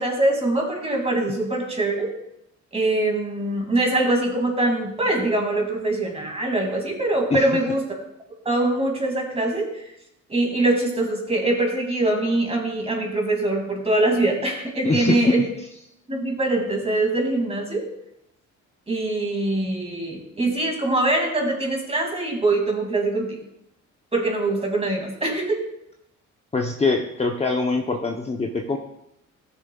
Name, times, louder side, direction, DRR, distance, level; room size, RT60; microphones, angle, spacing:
voice 1, 0.0-2.1 2.7-7.8 8.4-9.9 10.3-15.4 16.1-17.8 18.9-23.4 24.1-25.6, right 2 dB, 20° right, 1 dB, 2.4 m, -23 dB
voice 2, 14.8-15.3 26.5-28.8, left 3 dB, 20° left, 1 dB, 0.8 m, -23 dB
14.0 x 6.7 x 2.3 m, 0.81 s
cardioid pair, 90°, 30 cm